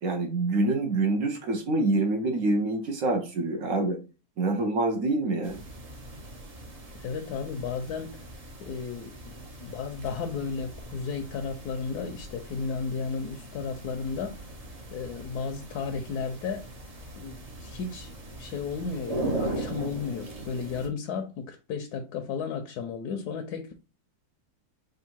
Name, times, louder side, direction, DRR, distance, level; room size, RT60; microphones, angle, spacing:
voice 1, 0.0-4.0 4.4-5.6, right 2 dB, 65° right, 1.0 m, -26 dB
sound 1, 5.4-20.9, right 1 dB, 35° right, 0.6 m, -39 dB
voice 2, 6.9-8.2 8.6-14.4 14.9-16.7 17.2-23.9, left 5 dB, 80° left, 1.1 m, -34 dB
3.6 x 2.5 x 4.3 m
omnidirectional pair, 1.7 m